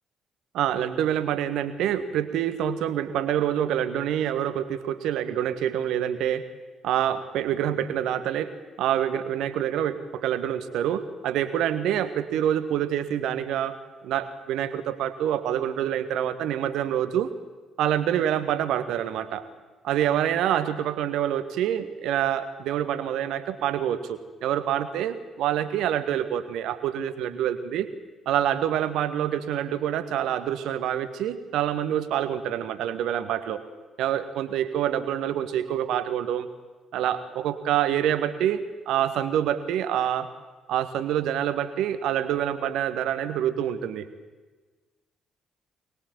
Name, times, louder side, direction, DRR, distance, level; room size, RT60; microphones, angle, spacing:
voice 1, 0.5-6.4 6.8-8.5 8.8-17.3 17.8-19.4 19.8-27.9 28.2-33.6 34.0-36.5 36.9-40.3 40.7-44.1, right 10 dB, 60° right, 12 dB, 1.6 m, -26 dB
23.5 x 21.0 x 7.7 m, 1.3 s
figure-of-eight pair, 45°, 0 cm